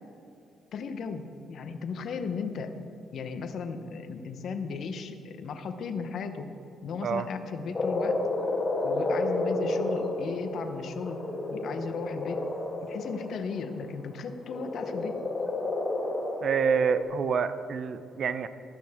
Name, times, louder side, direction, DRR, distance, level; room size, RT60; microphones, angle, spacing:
voice 1, 0.7-2.7 3.1-6.5 6.8-8.2 8.8-11.2 11.5-12.5 12.8-15.2, left 5 dB, 65° left, 8 dB, 0.9 m, -36 dB
Frog, 7.7-13.7 14.5-17.0, left 2 dB, 35° left, 2.1 m, -31 dB
voice 2, 16.4-18.5, right 6 dB, 55° right, 12 dB, 0.5 m, -27 dB
13.0 x 13.0 x 3.6 m, 2.6 s
cardioid pair, 90°, 0 cm